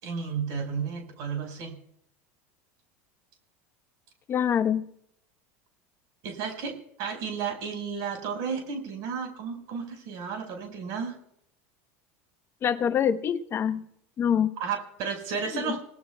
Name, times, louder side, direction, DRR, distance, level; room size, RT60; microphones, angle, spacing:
voice 1, 0.0-1.8 6.2-11.2 14.6-15.8, right 6 dB, 60° right, 4 dB, 5.0 m, -33 dB
voice 2, 4.3-4.9 12.6-13.9 14.2-14.5 15.5-15.8, left 8 dB, 35° left, 11 dB, 1.0 m, -25 dB
27.5 x 18.5 x 2.3 m, 0.74 s
supercardioid pair, 125°, 7 cm